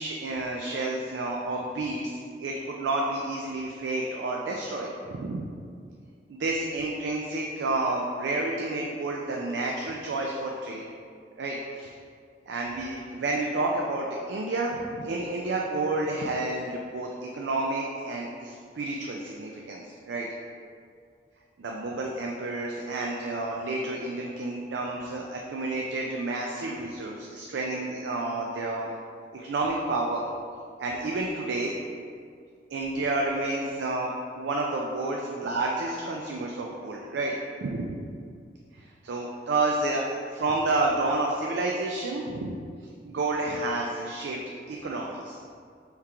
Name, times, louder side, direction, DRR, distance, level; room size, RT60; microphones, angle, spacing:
voice 1, 0.0-5.5 6.3-10.8 11.4-11.9 12.5-20.3 21.6-28.9 29.3-30.3 30.8-31.7 32.7-37.3 37.6-37.9 38.7-42.6 43.0-44.4 44.7-45.4, right 2 dB, 85° right, -1 dB, 0.4 m, -30 dB
3.6 x 2.9 x 4.6 m, 2.2 s
head